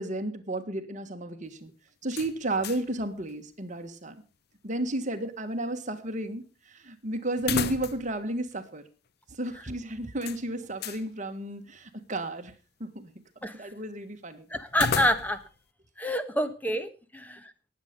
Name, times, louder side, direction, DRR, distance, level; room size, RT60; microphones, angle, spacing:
voice 1, 0.0-1.7 2.0-4.2 4.6-8.8 9.3-12.5 12.8-13.1 13.5-14.5, right 1 dB, 40° right, 8 dB, 1.6 m, -33 dB
sound 1, 2.1-3.0 3.3-3.4 7.4-8.2 8.5-8.6 10.2-11.1 14.7-15.6, left 6 dB, 55° left, 0.7 m, -34 dB
voice 2, 14.5-15.4 16.0-17.4, equal, 10° left, 9 dB, 1.3 m, -27 dB
19.0 x 8.1 x 5.2 m, 0.35 s
head